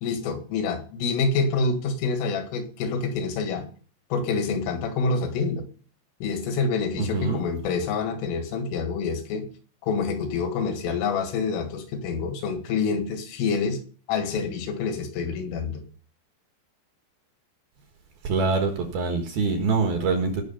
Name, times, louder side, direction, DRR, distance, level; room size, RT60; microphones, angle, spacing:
voice 1, 0.0-3.7 4.1-5.7 6.2-9.5 9.8-13.8 14.1-15.8, left 4 dB, 80° left, 7 dB, 4.2 m, -27 dB
voice 2, 7.0-7.4 18.2-20.4, right 4 dB, 65° right, 4 dB, 2.8 m, -24 dB
17.5 x 6.4 x 5.6 m, 0.41 s
omnidirectional pair, 5.8 m